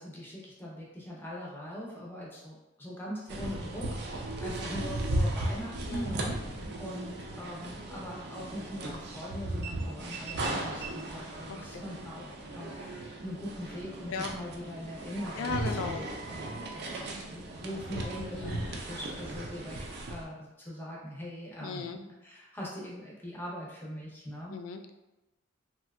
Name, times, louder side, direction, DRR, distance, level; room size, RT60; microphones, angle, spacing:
voice 1, 0.0-17.0 17.3-24.6, equal, 10° left, -4 dB, 0.6 m, -42 dB
sound 1, 3.3-20.2, right 1 dB, 50° right, 0.4 m, -36 dB
voice 2, 11.5-11.8 14.1-14.3 15.4-16.0 18.3-18.6 21.6-22.0 24.5-24.9, left 5 dB, 75° left, 7 dB, 0.3 m, -36 dB
3.2 x 2.7 x 2.4 m, 0.98 s
head